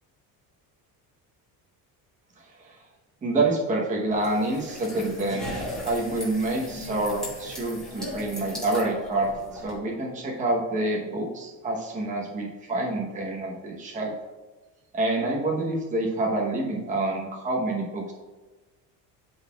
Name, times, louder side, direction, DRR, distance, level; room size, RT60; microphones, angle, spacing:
voice 1, 2.4-2.8 3.2-5.6 5.8-14.1 14.9-18.1, right 2 dB, 20° right, -2 dB, 1.0 m, -27 dB
sound 1, 4.1-9.7, left 1 dB, ahead, 1.8 m, -37 dB
12.0 x 4.0 x 2.3 m, 1.2 s
cardioid pair, 155°, 38 cm